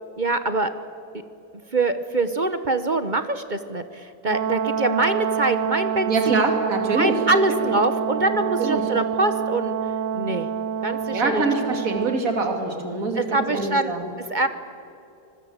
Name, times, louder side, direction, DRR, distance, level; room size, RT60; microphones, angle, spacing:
voice 1, 0.2-0.7 1.7-6.5 6.9-9.8 10.1-10.5 10.8-11.4 13.2-13.9 14.3-14.5, right 2 dB, 35° right, 10 dB, 0.9 m, -24 dB
Brass instrument, 4.3-12.2, right 8 dB, 85° right, 1.7 m, -27 dB
voice 2, 6.1-7.1 7.5-7.7 8.6-8.8 11.1-14.1, right 3 dB, 50° right, 4 dB, 3.1 m, -24 dB
25.0 x 21.0 x 8.1 m, 2.7 s
omnidirectional pair, 1.9 m